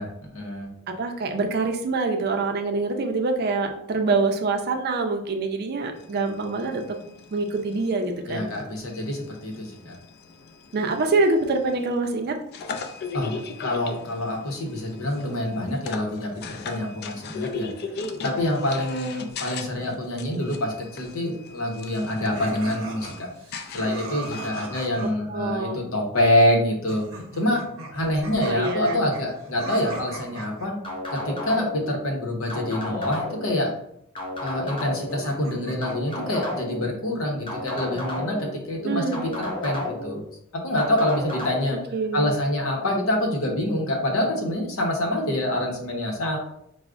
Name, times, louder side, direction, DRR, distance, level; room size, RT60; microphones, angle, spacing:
voice 1, 0.0-0.7 8.3-10.0 13.1-13.3 13.6-17.7 18.2-23.3 23.7-27.0 27.3-27.6 27.9-30.8 31.1-33.7 34.4-40.2 40.5-41.8 42.1-46.4, left 1 dB, 85° left, 2 dB, 0.8 m, -26 dB
voice 2, 0.9-7.0 7.3-8.5 10.7-12.4 25.0-25.8 28.5-29.1 38.8-39.3 41.9-42.3, right 3 dB, 50° right, 4 dB, 0.4 m, -25 dB
sound 1, 6.0-24.8, left 4 dB, 50° left, 0.3 m, -38 dB
sound 2, 22.3-25.1 26.9-30.7 32.6-33.5 35.0-36.3, right 2 dB, 90° right, 0.7 m, -39 dB
sound 3, 30.8-31.9 32.5-33.5 34.2-35.2 35.8-36.9 37.5-38.5 39.1-40.2 40.8-41.6, left 1 dB, 25° left, 0.6 m, -32 dB
4.7 x 2.0 x 2.4 m, 0.73 s
head